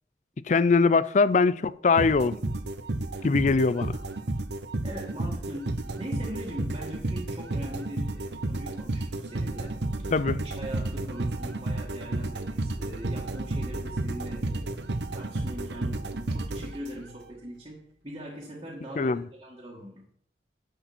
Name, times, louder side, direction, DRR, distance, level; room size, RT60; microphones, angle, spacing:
voice 1, 0.5-2.4 3.2-4.0 10.1-10.4 19.0-19.2, left 4 dB, 40° left, 0.4 m, -22 dB
sound 1, 2.0-17.2, right 2 dB, 75° right, 0.9 m, -32 dB
voice 2, 4.8-10.1 10.4-20.0, equal, 25° right, 2.2 m, -41 dB
10.0 x 8.1 x 4.4 m
head